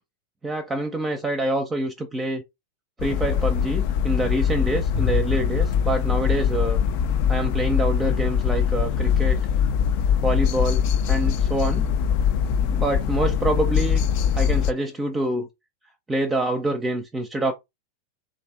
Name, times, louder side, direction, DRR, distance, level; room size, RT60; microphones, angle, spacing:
voice 1, 0.4-2.4 3.0-6.8 7.3-9.4 10.2-10.8 11.1-11.8 12.6-14.0 14.3-15.5 16.1-17.5, right 1 dB, 15° right, 0.6 m, -26 dB
sound 1, 3.0-14.7, left 8 dB, 45° left, 0.4 m, -22 dB
Bowed string instrument, 4.9-8.0, left 5 dB, 75° left, 1.1 m, -30 dB
3.4 x 2.5 x 3.3 m
figure-of-eight pair, 90°, 0 cm